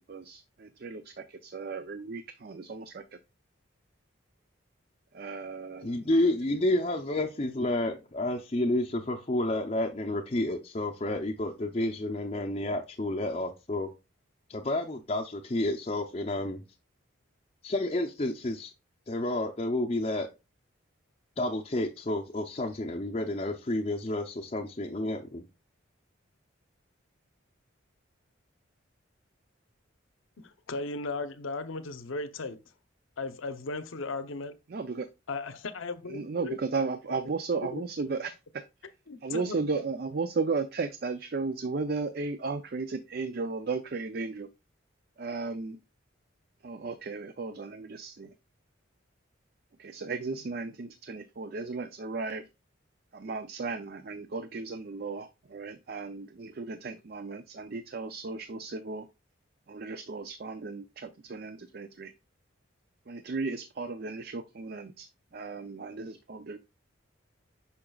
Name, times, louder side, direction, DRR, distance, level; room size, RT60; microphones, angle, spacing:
voice 1, 0.0-3.2 5.1-6.0 34.7-35.1 36.1-38.6 39.2-44.5 45.2-45.8 46.6-48.3 49.8-52.4 53.1-59.1 59.7-62.1 63.1-66.6, right 4 dB, 50° right, 0.4 m, -35 dB
voice 2, 5.8-13.9 14.5-16.6 17.6-18.7 19.1-20.3 21.4-25.4, left 1 dB, 30° left, 0.5 m, -30 dB
voice 3, 30.4-32.6 33.2-34.6 35.3-36.6 37.7-37.8 39.1-39.6, left 3 dB, 80° left, 0.8 m, -36 dB
8.7 x 5.9 x 2.3 m
head